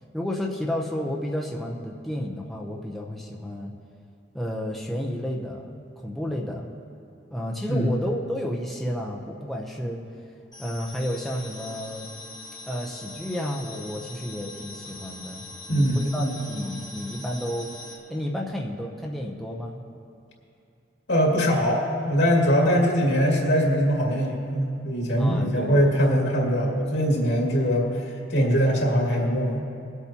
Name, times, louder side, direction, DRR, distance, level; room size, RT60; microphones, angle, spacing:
voice 1, 0.1-3.7 4.3-6.7 7.3-10.0 10.6-12.1 12.7-17.7 18.1-19.8 22.5-22.8 25.2-26.0, equal, ahead, -3 dB, 0.7 m, -31 dB
sound 1, 10.5-18.0, left 3 dB, 25° left, 1.4 m, -42 dB
voice 2, 15.7-16.5 21.1-29.6, equal, 85° left, -2 dB, 2.3 m, -22 dB
23.0 x 8.1 x 2.9 m, 2.6 s
head